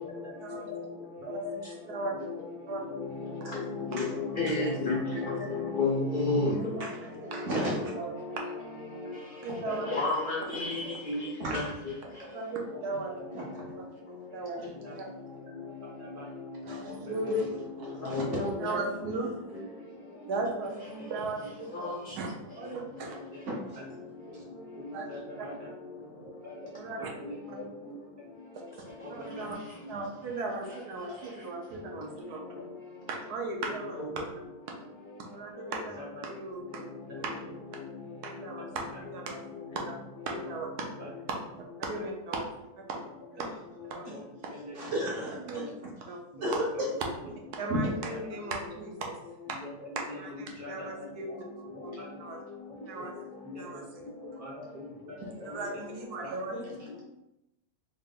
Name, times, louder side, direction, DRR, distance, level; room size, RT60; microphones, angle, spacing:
voice 1, 0.0-0.4 1.2-1.3 2.1-2.3 2.6-2.8 9.0-9.1 9.6-10.3 10.8-11.0 11.5-11.6 12.2-12.3 12.7-12.8 13.2-13.6 14.5-14.6 14.8-15.1 15.6-15.7 16.0-16.3 16.6-17.5 17.9-18.0 19.5-19.6 20.3-20.5 21.0-21.5 22.9-23.0 23.3-23.4 23.8-23.9 24.3-24.4 24.8-25.7 26.2-27.7 28.1-28.3 28.8-30.1 31.9-32.4 33.7-34.0 36.0-36.3 37.1-37.2 41.0-41.1 41.9-42.0 43.1-43.5 43.9-45.2 45.5-45.7 46.3-46.5 46.8-47.1 47.6-48.4 49.5-51.4 51.7-52.3 52.7-53.1 53.4-55.8 56.2-56.3 56.8-57.0, left 1 dB, 15° right, -5 dB, 0.7 m, -45 dB
voice 2, 3.9-5.0 5.3-6.6 7.6-7.7 9.9-10.7 11.1-11.3 11.5-11.6 17.3-17.4 18.1-18.8 21.8-22.0 34.0-34.1, left 3 dB, 65° left, -4 dB, 0.5 m, -29 dB
voice 3, 6.8-7.8 10.6-10.7 11.4-11.7 13.3-13.7 14.6-15.0 16.7-16.9 17.3-17.4 18.0-18.4 23.5-23.8 43.4-43.5 44.1-44.2 44.7-45.7 46.4-46.9 47.7-47.8 56.5-56.7, right 1 dB, 55° right, -3 dB, 1.1 m, -34 dB
voice 4, 9.4-9.9 12.3-13.1 14.3-14.6 15.0-15.1 16.6-17.3 18.6-19.5 20.3-21.7 22.1-23.2 24.9-25.1 25.4-25.5 26.8-27.1 29.1-29.6 29.9-32.4 33.1-34.1 35.2-35.9 36.2-36.8 37.2-37.5 38.2-39.4 39.7-39.9 40.2-40.9 41.6-42.4 42.9-43.0 43.4-43.5 43.9-44.0 45.4-45.7 46.1-46.5 47.6-49.1 49.5-49.6 50.0-50.3 50.7-51.3 51.8-51.9 52.2-52.4 52.9-53.1 53.6-53.8 55.4-56.5, right 3 dB, 80° right, 1 dB, 1.2 m, -36 dB
4.1 x 2.1 x 3.6 m, 0.90 s
omnidirectional pair, 1.7 m